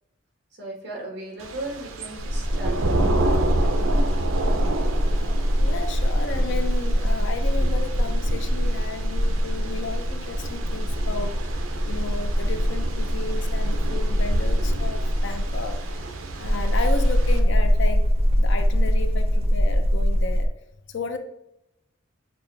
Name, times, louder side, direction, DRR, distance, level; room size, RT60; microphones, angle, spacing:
voice 1, 0.6-3.4, right 2 dB, 60° right, -1 dB, 1.5 m, -36 dB
Thunder / Rain, 1.4-17.4, right 2 dB, 85° right, 0.6 m, -31 dB
sound 1, 2.2-20.5, equal, 30° right, 0.5 m, -23 dB
voice 2, 5.6-11.4 11.9-15.8 16.3-18.1 18.4-20.5 20.9-21.2, left 3 dB, 60° left, 7 dB, 0.5 m, -33 dB
6.8 x 2.3 x 3.3 m, 0.85 s
head